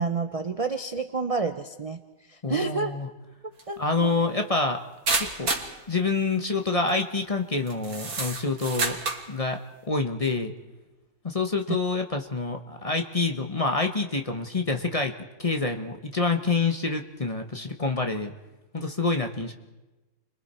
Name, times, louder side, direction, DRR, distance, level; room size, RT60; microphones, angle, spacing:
voice 1, 0.0-2.0 2.3-2.9 3.7-4.1, right 4 dB, 35° right, 8 dB, 0.6 m, -29 dB
voice 2, 2.4-3.1 3.8-4.8 5.2-5.5 5.9-9.0 9.3-9.6 9.9-10.5 11.2-15.1 15.4-18.3 18.7-19.5, left 3 dB, 25° left, 5 dB, 1.0 m, -27 dB
sound 1, 3.6-3.7 5.1-5.7 6.7-6.9 7.7-9.3, right 3 dB, 70° right, 2.4 m, -28 dB
30.0 x 22.5 x 4.4 m, 1.1 s
omnidirectional pair, 1.6 m